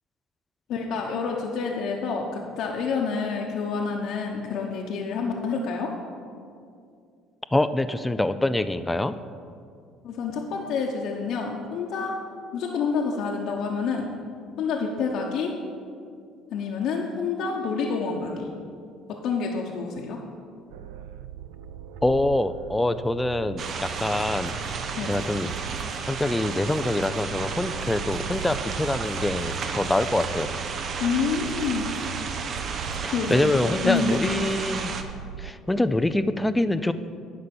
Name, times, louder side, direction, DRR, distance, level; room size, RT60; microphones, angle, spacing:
voice 1, 0.7-5.9 10.0-12.2 12.5-14.1 14.6-15.5 16.5-18.5 19.2-20.2 24.9-25.1 31.0-31.8 33.1-34.2, left 5 dB, 60° left, -1 dB, 0.9 m, -28 dB
voice 2, 7.5-9.2 22.0-24.5 25.1-25.5 26.1-30.5 33.0-34.9 35.4-36.9, left 1 dB, 10° left, 11 dB, 0.4 m, -25 dB
sound 1, 20.7-35.5, right 8 dB, 90° right, 0.4 m, -39 dB
sound 2, 23.6-35.0, right 5 dB, 45° right, 0.8 m, -33 dB
9.8 x 5.3 x 6.9 m, 2.3 s
cardioid pair, 115°, 0 cm